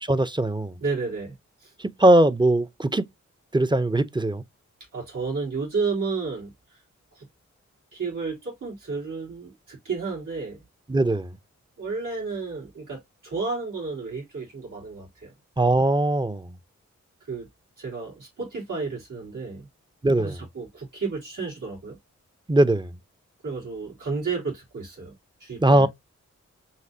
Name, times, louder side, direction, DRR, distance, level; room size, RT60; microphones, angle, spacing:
voice 1, 0.0-0.7 1.8-3.1 3.5-4.4 10.9-11.3 15.6-16.6 20.0-20.4 22.5-22.9 25.6-25.9, right 1 dB, 15° right, 0.6 m, -20 dB
voice 2, 0.8-1.3 1.6-1.7 4.9-6.8 7.1-7.2 7.9-10.6 11.8-15.3 17.2-17.5 17.8-19.7 20.2-22.0 23.4-25.1 25.4-25.9, right 4 dB, 90° right, 3.1 m, -32 dB
5.8 x 2.9 x 2.7 m
cardioid pair, 45°, 30 cm